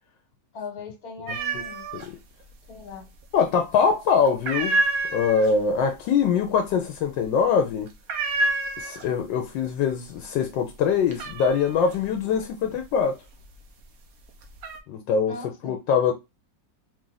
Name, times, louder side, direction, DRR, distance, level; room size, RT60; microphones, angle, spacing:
voice 1, 0.5-1.9 2.7-3.1 15.3-15.8, left 4 dB, 55° left, 1.7 m, -39 dB
voice 2, 1.3-1.6 1.9-2.2 3.3-4.8 5.1-7.9 8.8-13.2 14.9-16.1, left 6 dB, 80° left, 1.3 m, -23 dB
sound 1, 1.3-2.1 2.4-3.2 3.5-3.9 4.2-9.3 9.7-10.2 10.5-13.7 14.2-14.8, right 2 dB, 60° right, 1.1 m, -29 dB
4.5 x 2.5 x 3.9 m
omnidirectional pair, 2.0 m